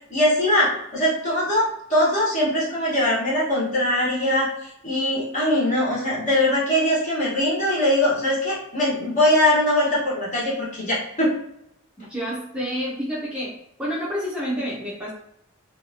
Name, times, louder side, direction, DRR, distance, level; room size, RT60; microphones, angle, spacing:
voice 1, 0.1-11.3, left 1 dB, 40° left, -6 dB, 1.1 m, -21 dB
voice 2, 12.1-13.5 13.8-15.1, equal, 5° right, -6 dB, 0.5 m, -28 dB
2.7 x 2.3 x 2.7 m, 0.76 s
head